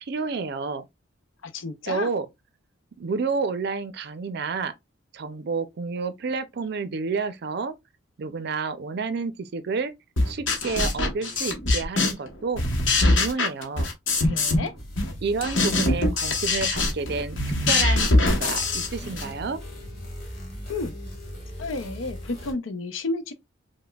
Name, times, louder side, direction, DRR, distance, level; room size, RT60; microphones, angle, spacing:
voice 1, 0.0-0.9 1.9-2.3 3.0-4.7 5.1-7.8 8.2-9.9 10.3-12.6 13.0-13.9 15.2-17.4 17.7-19.6, right 4 dB, 55° right, 0.4 m, -30 dB
voice 2, 1.4-2.1 14.2-14.7 20.7-20.9 21.6-23.3, left 3 dB, 85° left, 0.6 m, -31 dB
sound 1, 10.2-12.3 12.6-14.7 15.0-19.3, left 2 dB, 70° left, 1.0 m, -23 dB
sound 2, 14.8-22.5, equal, 55° left, 2.0 m, -39 dB
5.0 x 2.1 x 2.2 m
head